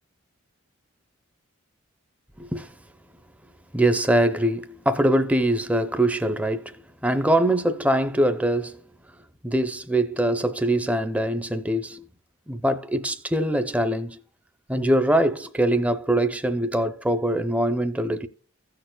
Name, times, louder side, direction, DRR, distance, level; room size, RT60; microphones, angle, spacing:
voice 1, 2.4-2.7 3.7-8.8 9.4-12.0 12.5-14.2 14.7-18.3, right 1 dB, 5° right, 0.6 m, -23 dB
16.0 x 6.6 x 2.3 m
head